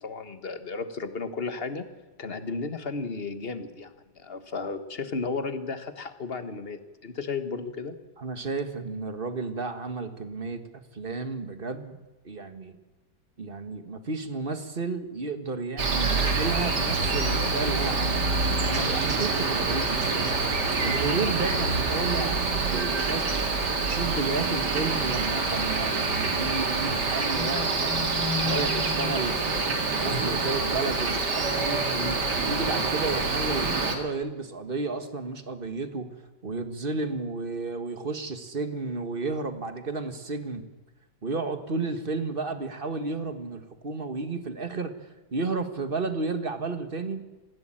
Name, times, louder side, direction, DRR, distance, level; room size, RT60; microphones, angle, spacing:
voice 1, 0.0-1.8 2.2-7.9 31.9-32.3, left 4 dB, 35° left, 10 dB, 1.5 m, -34 dB
voice 2, 8.2-10.6 10.9-12.0 12.2-12.8 13.4-18.3 18.6-20.3 20.8-23.2 23.8-28.1 28.4-31.8 32.4-36.1 36.4-40.6 41.2-47.2, right 3 dB, 30° right, 9 dB, 1.6 m, -32 dB
Cricket, 15.8-34.0, right 3 dB, 65° right, 2.9 m, -26 dB
20.0 x 15.5 x 9.0 m, 1.2 s
omnidirectional pair, 2.0 m